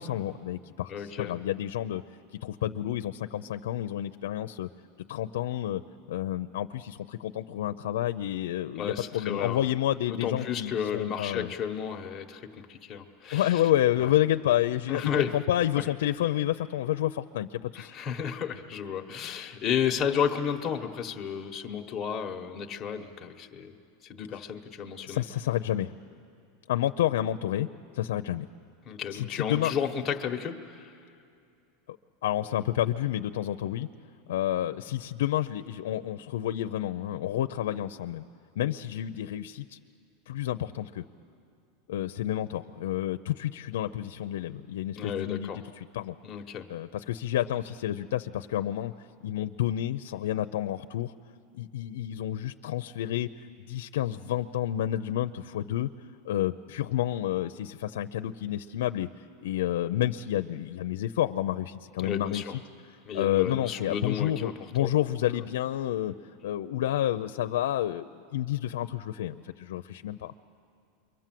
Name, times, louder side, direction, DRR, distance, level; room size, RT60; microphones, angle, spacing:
voice 1, 0.0-2.0 2.4-4.7 5.1-5.8 6.1-11.5 13.3-17.9 25.0-26.0 26.7-27.7 27.9-28.5 29.1-29.7 32.2-33.9 34.3-38.2 38.6-39.8 40.3-41.0 41.9-45.5 45.9-46.2 46.7-48.9 49.2-51.1 51.5-53.3 53.7-55.9 56.2-59.1 59.4-62.4 63.1-66.1 66.4-70.3, left 12 dB, 85° left, 9 dB, 0.5 m, -29 dB
voice 2, 0.9-1.3 8.7-9.6 10.1-13.6 14.0-14.1 14.9-15.4 15.8-15.9 17.7-23.7 24.0-25.2 28.8-30.9 45.0-45.6 46.2-46.7 62.0-62.6 63.0-64.5 64.8-64.9 65.3-65.4, left 8 dB, 20° left, 3 dB, 1.2 m, -32 dB
28.5 x 23.5 x 7.6 m, 2.5 s
supercardioid pair, 160°, 0 cm